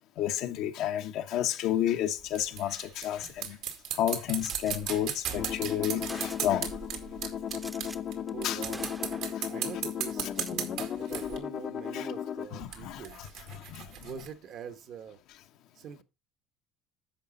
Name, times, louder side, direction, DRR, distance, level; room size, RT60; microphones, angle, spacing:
voice 1, 0.2-3.6 3.9-6.7 8.4-8.6 9.4-9.5 11.9-12.1 12.5-13.9, left 11 dB, 75° left, 1.0 m, -31 dB
sound 1, 2.2-8.1 8.4-11.4 12.6-14.3, right 9 dB, 80° right, 2.1 m, -37 dB
Gunshot gunfire, 4.4-4.8 5.6-5.7 6.1-6.8 7.5-8.0 8.3-8.5 8.7-9.4 10.2-10.6, right 2 dB, 15° right, 0.7 m, -44 dB
sound 2, 5.4-12.5, left 9 dB, 50° left, 0.7 m, -36 dB
voice 2, 8.3-8.9 9.5-13.4 13.7-15.2 15.7-16.0, right 8 dB, 60° right, 1.1 m, -44 dB
10.0 x 6.7 x 3.9 m
cardioid pair, 115°, 0 cm